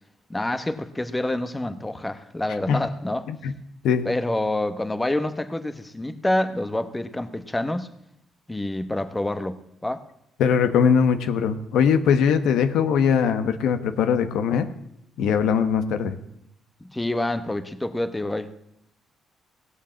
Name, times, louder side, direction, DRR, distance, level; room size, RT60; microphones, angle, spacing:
voice 1, 0.3-3.3 4.0-7.9 8.5-10.0 16.9-18.5, left 1 dB, 15° left, 10 dB, 1.1 m, -27 dB
voice 2, 10.4-14.7 15.2-16.2, left 7 dB, 85° left, 9 dB, 1.0 m, -21 dB
17.5 x 8.4 x 7.5 m, 0.78 s
cardioid pair, 90°, 0 cm